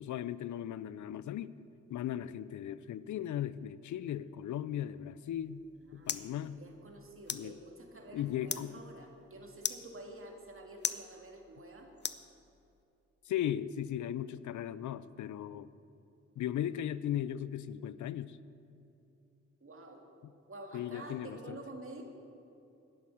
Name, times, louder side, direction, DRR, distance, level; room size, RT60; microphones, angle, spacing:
voice 1, 0.0-1.5 1.9-5.6 5.9-6.6 7.3-7.6 8.1-8.8 13.2-15.7 16.4-18.4 20.2-20.3 20.7-21.6, left 11 dB, 80° left, 17 dB, 0.5 m, -37 dB
sound 1, 5.3-12.8, left 6 dB, 35° left, 0.6 m, -43 dB
voice 2, 5.8-11.9 19.6-20.0 20.5-22.0, right 2 dB, 45° right, 2 dB, 2.1 m, -49 dB
11.0 x 10.5 x 6.3 m, 2.8 s
cardioid pair, 55°, 29 cm